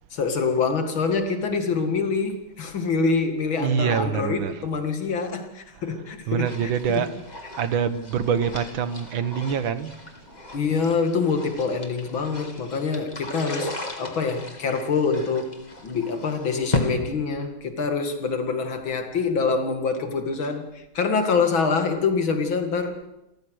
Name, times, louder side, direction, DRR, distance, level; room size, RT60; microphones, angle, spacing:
voice 1, 0.1-7.1 10.5-23.0, left 4 dB, 90° left, 2.9 m, -25 dB
voice 2, 3.6-4.6 6.3-7.1 7.6-10.0, right 7 dB, 80° right, 2.0 m, -25 dB
sound 1, 6.4-16.9, left 3 dB, 20° left, 2.4 m, -36 dB
28.5 x 14.5 x 6.5 m
omnidirectional pair, 2.1 m